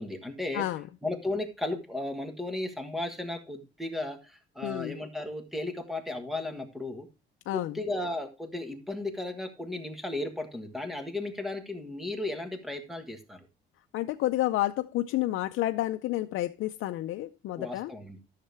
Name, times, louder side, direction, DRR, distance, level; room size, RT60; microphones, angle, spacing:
voice 1, 0.0-0.6 1.0-7.1 7.5-13.5 17.6-18.2, left 2 dB, ahead, 1.4 m, -35 dB
voice 2, 0.5-0.9 4.6-5.0 7.5-7.8 13.9-17.9, left 15 dB, 85° left, 0.5 m, -30 dB
13.0 x 6.7 x 3.4 m
cardioid pair, 170°, 21 cm